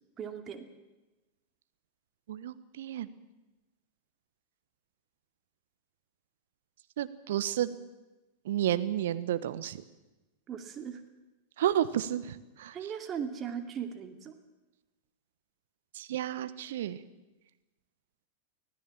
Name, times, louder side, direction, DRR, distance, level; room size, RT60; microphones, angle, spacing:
voice 1, 0.2-0.7 10.5-11.0 12.7-14.3, right 7 dB, 25° right, 6 dB, 2.5 m, -38 dB
voice 2, 2.3-3.1 7.0-7.7 8.4-9.8 11.6-12.8 15.9-17.0, right 11 dB, 55° right, 13 dB, 1.1 m, -31 dB
24.5 x 16.5 x 7.4 m, 1.1 s
figure-of-eight pair, 90°, 0 cm